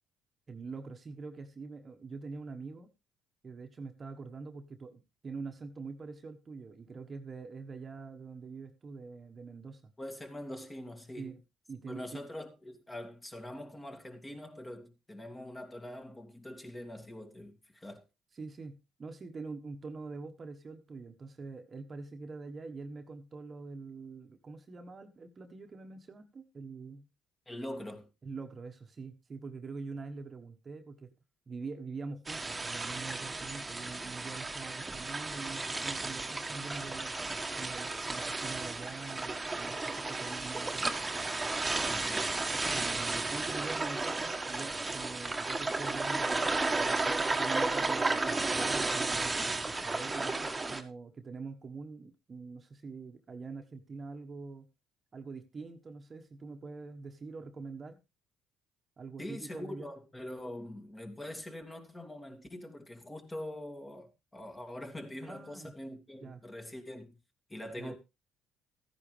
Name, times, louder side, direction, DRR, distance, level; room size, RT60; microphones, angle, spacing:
voice 1, 0.5-2.9 3.4-9.9 11.2-11.4 11.7-12.2 18.4-27.1 28.2-31.1 31.5-37.1 37.6-40.8 42.7-49.3 49.7-54.7 55.1-58.0 59.0-59.9 65.3-65.7 66.2-66.4 67.8-67.9, right 4 dB, 35° right, 1.4 m, -44 dB
voice 2, 10.0-11.3 11.9-18.0 27.5-28.1 41.9-42.3 59.2-67.2 67.5-67.9, left 1 dB, 20° left, 2.6 m, -43 dB
sound 1, 32.3-50.8, right 3 dB, 20° right, 1.6 m, -33 dB
13.5 x 10.0 x 3.4 m
supercardioid pair, 70°, 0 cm